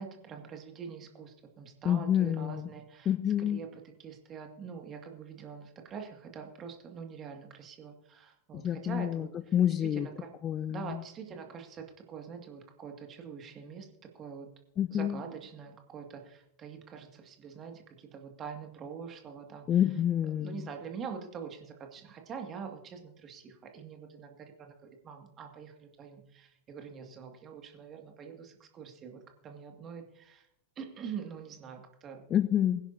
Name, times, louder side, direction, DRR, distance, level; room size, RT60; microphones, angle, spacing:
voice 1, 0.0-3.1 3.4-10.3 10.7-13.9 14.1-14.5 14.9-19.7 20.4-30.5 30.8-32.2, right 6 dB, 25° right, 3 dB, 2.2 m, -44 dB
voice 2, 1.8-2.7 3.1-3.6 8.5-9.3 9.5-10.1 10.4-11.0 14.8-15.2 19.7-20.5 32.3-32.8, left 10 dB, 30° left, 14 dB, 0.6 m, -28 dB
22.5 x 10.5 x 2.8 m, 0.81 s
figure-of-eight pair, 90°, 0 cm